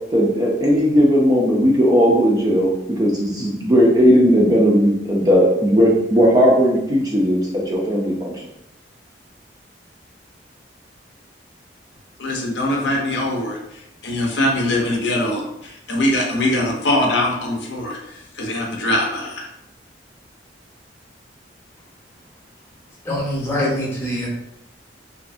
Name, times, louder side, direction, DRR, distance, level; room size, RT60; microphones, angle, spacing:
voice 1, 0.1-8.3, equal, 20° right, -2 dB, 0.4 m, -16 dB
voice 2, 12.2-19.5, left 1 dB, 75° left, 0 dB, 0.6 m, -22 dB
voice 3, 23.0-24.3, left 1 dB, 15° left, -6 dB, 0.7 m, -23 dB
2.6 x 2.5 x 2.4 m, 0.81 s
head